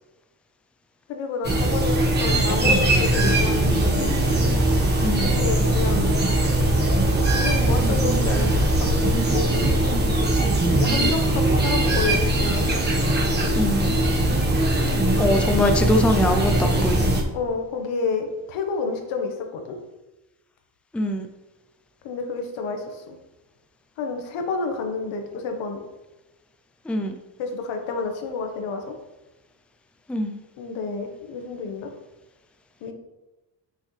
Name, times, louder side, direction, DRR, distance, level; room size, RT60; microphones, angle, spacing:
voice 1, 1.1-4.1 5.2-6.2 7.3-9.8 10.7-12.7 17.3-19.8 22.0-23.2 24.0-25.8 27.4-28.9 30.6-31.9 32.8-32.9, left 4 dB, 90° left, 4 dB, 1.4 m, -29 dB
sound 1, 1.4-17.2, right 1 dB, 20° right, 1.3 m, -20 dB
voice 2, 5.0-5.4 13.5-14.0 15.2-17.1 20.9-21.3 26.9-27.2 30.1-30.4, left 1 dB, 5° left, 5 dB, 0.4 m, -23 dB
8.5 x 6.4 x 3.3 m, 1.1 s
cardioid pair, 140°, 46 cm